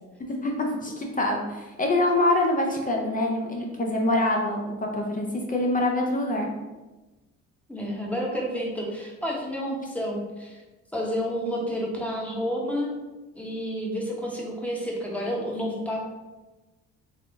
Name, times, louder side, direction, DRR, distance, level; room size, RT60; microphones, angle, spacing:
voice 1, 0.8-6.5, left 1 dB, 30° left, 0 dB, 0.5 m, -25 dB
voice 2, 7.7-10.6 10.9-12.9 13.3-16.0, equal, 5° left, -2 dB, 0.9 m, -30 dB
3.4 x 2.5 x 3.4 m, 1.1 s
cardioid pair, 90°, 30 cm